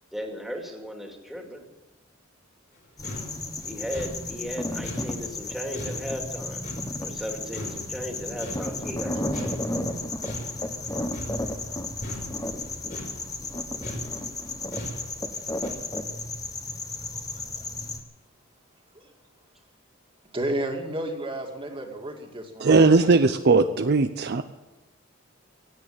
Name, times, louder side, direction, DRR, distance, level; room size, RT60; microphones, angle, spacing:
voice 1, 0.1-1.6 3.6-6.6 7.0-9.8, equal, ahead, 1 dB, 2.4 m, -36 dB
sound 1, 2.7-2.8 3.0-7.3 7.5-9.1 9.3-15.7, equal, 55° left, 4.8 m, -40 dB
sound 2, 3.0-18.0, left 2 dB, 20° left, 1.2 m, -33 dB
voice 2, 20.3-22.9, right 1 dB, 25° right, 3 dB, 2.2 m, -31 dB
voice 3, 22.6-24.4, right 3 dB, 55° right, 9 dB, 0.6 m, -19 dB
16.5 x 8.9 x 8.6 m, 1.1 s
head